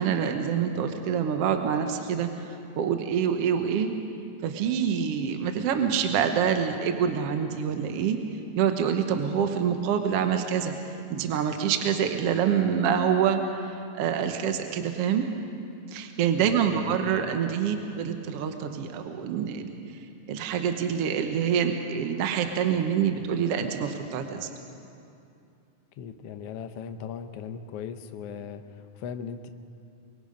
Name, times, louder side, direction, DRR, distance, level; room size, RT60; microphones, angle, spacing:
voice 1, 0.0-2.3 2.8-3.9 4.4-8.2 8.6-10.7 11.1-15.2 15.9-19.7 20.3-24.5, right 8 dB, 65° right, 6 dB, 1.6 m, -26 dB
voice 2, 16.4-17.3 26.0-29.5, left 7 dB, 80° left, 8 dB, 1.3 m, -38 dB
24.0 x 23.5 x 5.2 m, 2.6 s
omnidirectional pair, 3.8 m